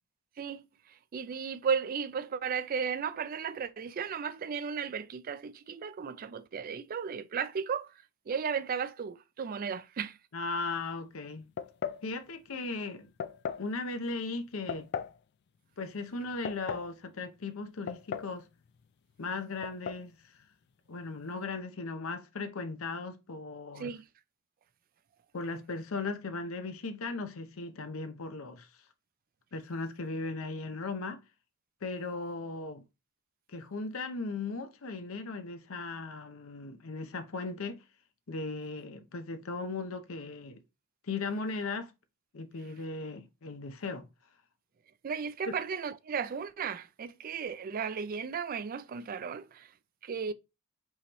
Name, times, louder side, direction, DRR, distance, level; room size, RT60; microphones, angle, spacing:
voice 1, 1.1-7.9 8.3-10.2 23.8-24.0 45.0-49.7 50.0-50.3, right 6 dB, 45° right, 0.3 m, -35 dB
voice 2, 10.3-11.5 12.0-13.1 13.6-14.9 15.8-18.5 19.2-20.2 20.9-23.9 25.3-28.7 29.5-31.2 31.8-32.8 33.5-37.8 38.3-40.6 41.1-41.9 42.3-44.1, left 3 dB, 75° left, 0.7 m, -37 dB
sound 1, 11.6-12.1 13.2-13.7 14.7-15.2 16.2-16.9 17.9-18.4 18.7-18.8 19.6-20.1, left 7 dB, 50° left, 0.3 m, -37 dB
5.5 x 3.0 x 3.0 m
head